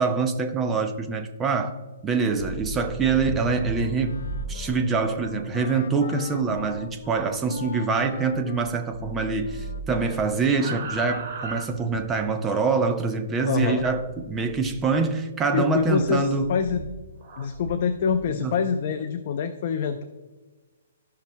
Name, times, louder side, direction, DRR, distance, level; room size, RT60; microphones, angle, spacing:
voice 1, 0.0-1.7 2.0-4.2 4.5-16.5 18.3-18.6, right 4 dB, 10° right, 6 dB, 0.6 m, -25 dB
sound 1, 2.2-8.6 8.9-12.3 13.7-15.0 15.6-18.2, right 2 dB, 30° right, 1.9 m, -38 dB
Wind instrument woodwind instrument, 3.5-10.9, left 4 dB, 85° left, 0.7 m, -41 dB
voice 2, 13.5-13.9 15.5-16.8 17.4-20.0, left 6 dB, 40° left, 7 dB, 0.5 m, -25 dB
15.0 x 5.7 x 2.2 m, 1.3 s
hypercardioid pair, 170°, 0 cm